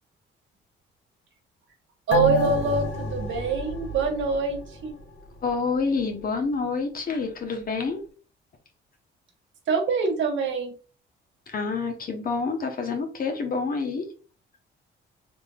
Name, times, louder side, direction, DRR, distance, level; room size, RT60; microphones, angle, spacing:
sound 1, 2.1-5.0 5.4-5.5, left 1 dB, 75° left, 1.3 m, -29 dB
voice 1, 2.1-4.9 9.7-10.7, right 4 dB, 70° right, 3 dB, 1.3 m, -25 dB
voice 2, 5.4-8.0 11.5-14.1, left 4 dB, 45° left, 4 dB, 1.0 m, -28 dB
3.5 x 3.3 x 2.3 m, 0.37 s
cardioid pair, 90°, 20 cm